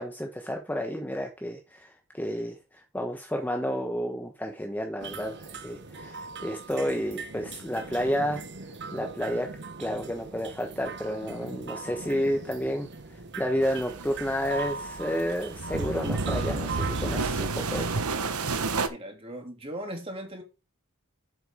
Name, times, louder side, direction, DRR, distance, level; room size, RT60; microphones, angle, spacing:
voice 1, 0.0-2.6 2.9-8.4 8.9-9.5 9.8-12.9 13.4-18.0, equal, 10° left, 1.1 m, -31 dB
sound 1, 5.0-18.4, right 4 dB, 50° right, 1.1 m, -41 dB
sound 2, 13.6-18.9, right 3 dB, 85° right, 1.2 m, -31 dB
voice 2, 18.9-20.4, right 1 dB, 25° right, 2.9 m, -38 dB
8.3 x 7.9 x 3.6 m
head